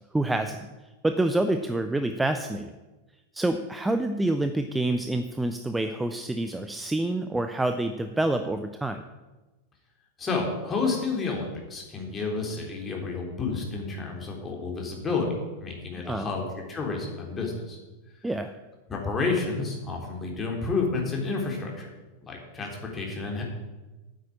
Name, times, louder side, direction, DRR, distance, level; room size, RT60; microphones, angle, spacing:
voice 1, 0.1-0.7 1.0-2.7 3.3-9.0 16.0-16.3 18.2-18.6, right 2 dB, 5° right, 8 dB, 0.7 m, -27 dB
voice 2, 10.2-15.3 15.6-17.8 18.9-21.9 22.2-23.4, left 4 dB, 20° left, 0 dB, 3.6 m, -30 dB
9.3 x 8.6 x 8.6 m, 1.1 s
figure-of-eight pair, 90°, 0 cm